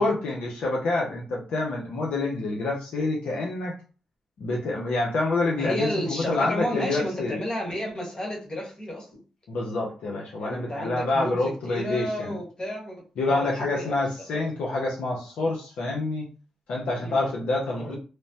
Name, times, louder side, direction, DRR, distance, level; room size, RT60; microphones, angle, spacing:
voice 1, 0.0-3.7 4.4-7.4 9.5-12.4 13.2-16.2 16.7-18.0, left 2 dB, 75° left, 0.6 m, -27 dB
voice 2, 5.6-9.2 10.4-11.4 11.6-14.0 14.3-14.5 17.0-17.2 17.8-18.0, equal, 35° left, 1.4 m, -32 dB
3.1 x 2.0 x 2.8 m
supercardioid pair, 55°, 2 cm